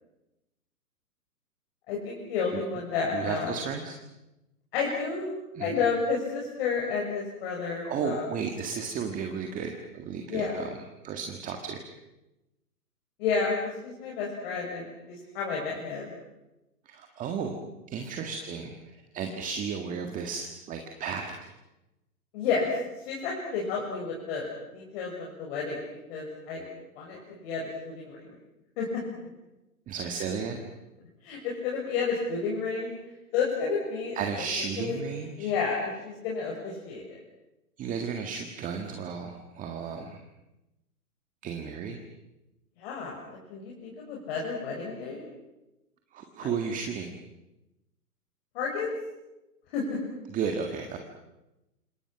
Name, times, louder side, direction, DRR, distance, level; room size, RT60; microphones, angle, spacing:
voice 1, 1.9-3.5 4.7-5.3 5.6-8.2 10.3-10.6 13.2-16.1 22.3-22.7 23.0-25.8 26.1-26.7 27.0-28.2 28.8-28.9 31.2-32.9 33.3-34.2 34.8-35.0 35.4-37.0 42.8-43.2 43.5-45.2 46.4-46.5 48.5-48.9 49.7-50.0, left 5 dB, 40° left, -2 dB, 6.3 m, -31 dB
voice 2, 3.1-4.0 5.5-5.8 7.8-10.8 11.0-11.8 16.8-17.6 17.9-21.3 29.9-30.6 34.1-35.5 37.8-40.2 41.4-42.0 46.1-47.1 50.3-51.0, right 6 dB, 15° right, 4 dB, 1.8 m, -34 dB
28.0 x 27.0 x 6.0 m, 0.97 s
hypercardioid pair, 135°, 46 cm